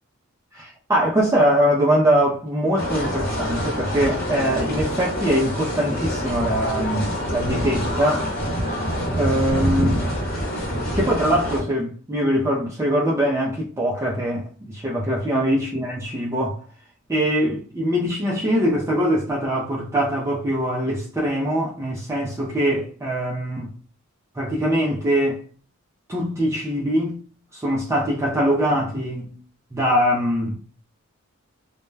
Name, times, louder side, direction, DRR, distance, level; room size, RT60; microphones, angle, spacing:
voice 1, 0.5-8.3 9.2-10.0 10.9-16.6 17.1-23.7 24.4-25.4 26.1-27.2 27.5-29.4 29.7-30.6, equal, 15° right, 0.4 m, -22 dB
sound 1, 2.8-11.6, equal, 45° left, 1.0 m, -26 dB
2.1 x 2.1 x 3.2 m
head